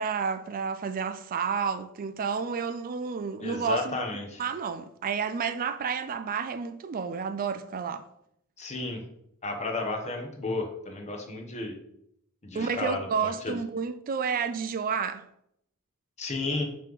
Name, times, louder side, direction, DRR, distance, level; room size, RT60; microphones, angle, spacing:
voice 1, 0.0-4.0 4.4-8.1 12.5-15.2, right 6 dB, 40° right, 0.4 m, -30 dB
voice 2, 3.4-4.4 8.6-9.0 9.4-11.7 12.4-13.6 16.2-16.6, left 2 dB, 30° left, 1.0 m, -33 dB
5.7 x 3.1 x 5.3 m
head